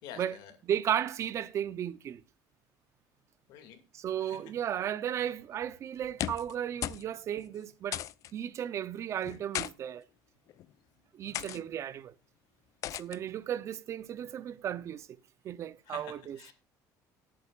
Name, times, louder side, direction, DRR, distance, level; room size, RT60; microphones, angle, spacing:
voice 1, 0.0-0.5 3.5-3.8 4.3-4.4 11.2-11.6 15.9-16.5, left 8 dB, 75° left, 2.3 m, -48 dB
voice 2, 0.6-2.2 3.9-8.0 8.3-10.0 11.1-12.1 12.9-15.2 15.4-16.4, right 10 dB, 45° right, 0.7 m, -34 dB
sound 1, 6.0-6.6 6.8-7.1 7.4-7.5 7.9-8.3 9.2-9.7 10.5-10.7 11.3-11.6 12.8-13.2, left 12 dB, 50° left, 0.4 m, -36 dB
18.0 x 8.7 x 2.4 m
cardioid pair, 140°, 7 cm